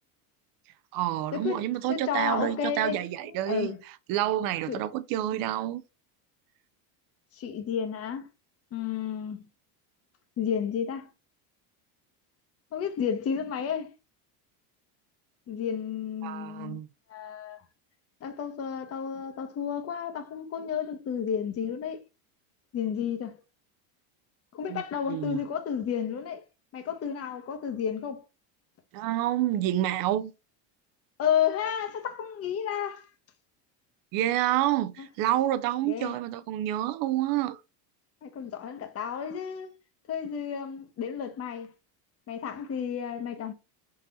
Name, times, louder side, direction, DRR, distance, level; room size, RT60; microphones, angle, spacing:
voice 1, 0.9-3.7 4.1-5.8 16.2-16.9 24.7-24.8 25.1-25.4 28.9-30.3 34.1-37.6, right 13 dB, 50° right, 0.4 m, -28 dB
voice 2, 1.9-3.8 4.7-4.8 7.3-8.3 8.7-9.5 10.4-11.1 12.7-13.9 15.5-16.8 17.1-17.6 18.2-22.0 22.7-23.4 24.5-26.5 26.7-28.2 31.2-33.1 35.8-36.1 38.2-39.7 40.1-41.7 42.3-43.5, left 8 dB, 30° left, 0.7 m, -32 dB
3.8 x 2.7 x 3.9 m
cardioid pair, 140°, 46 cm